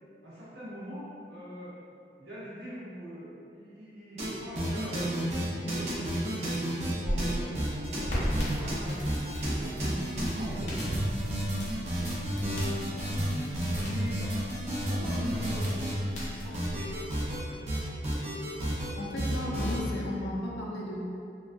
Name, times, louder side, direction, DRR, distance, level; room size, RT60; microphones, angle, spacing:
voice 1, 0.2-1.8 2.2-6.4 6.7-10.6 11.4-13.1 13.5-14.6 14.8-16.9, equal, 70° right, -10 dB, 0.7 m, -43 dB
sound 1, 4.2-4.3 4.5-16.3 16.5-17.4 17.7-18.9 19.2-19.8, right 1 dB, 40° right, 0.4 m, -31 dB
sound 2, 7.0-17.4, equal, 40° left, 0.6 m, -38 dB
voice 2, 19.0-21.0, left 1 dB, 85° left, -3 dB, 0.4 m, -34 dB
2.2 x 2.2 x 2.5 m, 2.5 s
head